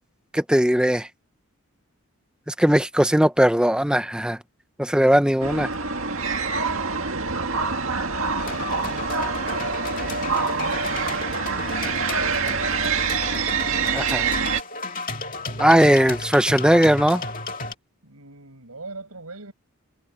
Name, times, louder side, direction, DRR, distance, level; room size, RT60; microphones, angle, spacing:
voice 1, 0.3-1.1 2.5-4.4 4.8-5.7 13.9-14.2 15.6-17.2, equal, 5° right, 0.9 m, -18 dB
sound 1, 5.4-14.6, right 5 dB, 65° right, 2.1 m, -25 dB
voice 2, 6.7-13.3 15.4-15.9 18.0-19.5, right 2 dB, 85° right, 7.0 m, -42 dB
sound 2, 8.4-17.7, left 3 dB, 40° left, 2.5 m, -33 dB
head